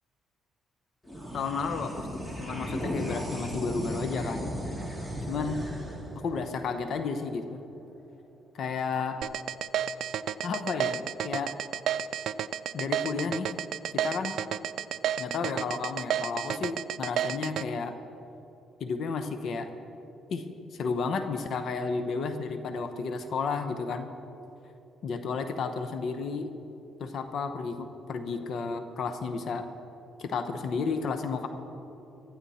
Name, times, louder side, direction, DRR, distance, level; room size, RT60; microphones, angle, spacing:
sound 1, 1.0-7.8, equal, 10° left, 2.6 m, -36 dB
voice 1, 1.3-4.5 5.3-5.6 6.2-7.6 8.5-9.2 10.4-11.6 12.7-13.5 14.0-14.4 15.2-18.0 18.8-19.7 20.3-20.5 20.8-24.1 25.0-26.5 27.0-29.6 30.2-31.5, left 4 dB, 65° left, 8 dB, 1.0 m, -32 dB
sound 2, 9.2-17.6, right 10 dB, 75° right, 0.4 m, -30 dB
19.0 x 13.0 x 4.3 m, 2.8 s
cardioid pair, 90°, 0 cm